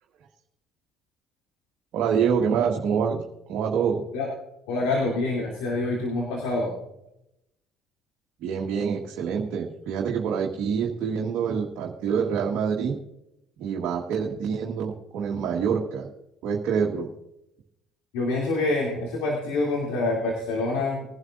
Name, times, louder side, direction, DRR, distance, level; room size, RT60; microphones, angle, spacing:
voice 1, 1.9-3.2 3.5-4.0 8.4-13.0 13.6-16.1 16.4-17.1, right 7 dB, 65° right, -1 dB, 1.5 m, -26 dB
voice 2, 4.7-6.7 18.1-21.0, left 2 dB, 75° left, -2 dB, 2.9 m, -26 dB
20.5 x 11.5 x 2.6 m, 0.84 s
hypercardioid pair, 65°, 0 cm